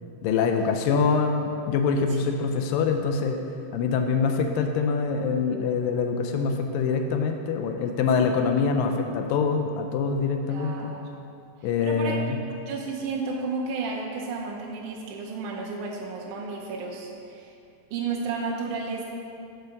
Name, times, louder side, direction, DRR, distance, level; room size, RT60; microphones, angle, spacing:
voice 1, 0.2-3.4 3.7-10.9 11.6-12.4, left 5 dB, 85° left, 4 dB, 2.2 m, -24 dB
voice 2, 10.5-11.0 11.8-12.2 12.7-17.5 17.9-19.1, right 4 dB, 75° right, -3 dB, 2.0 m, -32 dB
6.8 x 4.6 x 6.4 m, 2.6 s
omnidirectional pair, 4.0 m